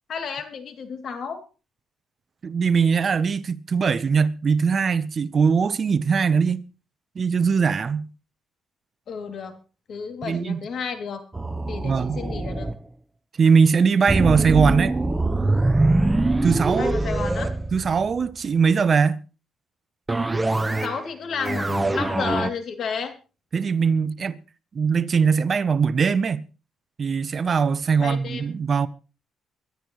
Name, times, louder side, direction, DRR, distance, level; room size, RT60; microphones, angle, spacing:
voice 1, 0.1-1.4 9.1-9.6 9.9-11.2 11.7-12.7 16.8-17.5 20.8-23.2 28.0-28.5, left 6 dB, 60° left, 2.9 m, -31 dB
voice 2, 2.4-6.6 7.2-8.1 10.2-10.6 11.8-12.2 13.4-15.0 16.4-16.9 17.7-19.2 23.5-24.4 24.7-26.4 27.0-28.9, right 5 dB, 45° right, 0.9 m, -21 dB
sound 1, 11.3-12.8 14.1-18.3 20.1-21.0 21.3-22.5, right 2 dB, 15° right, 0.9 m, -23 dB
23.5 x 12.0 x 3.2 m
cardioid pair, 90°, 0 cm